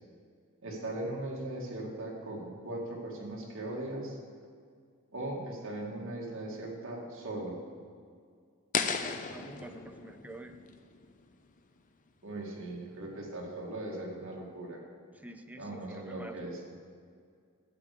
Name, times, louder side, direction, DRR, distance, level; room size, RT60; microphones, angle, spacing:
voice 1, 0.6-4.2 5.1-7.6 12.2-14.8 15.6-16.6, right 1 dB, 65° right, -2 dB, 2.3 m, -39 dB
sound 1, 8.7-11.8, left 5 dB, 40° left, 0.6 m, -36 dB
voice 2, 9.3-10.6 15.1-16.5, right 1 dB, 5° right, 7 dB, 0.5 m, -47 dB
11.5 x 8.2 x 5.0 m, 2.2 s
head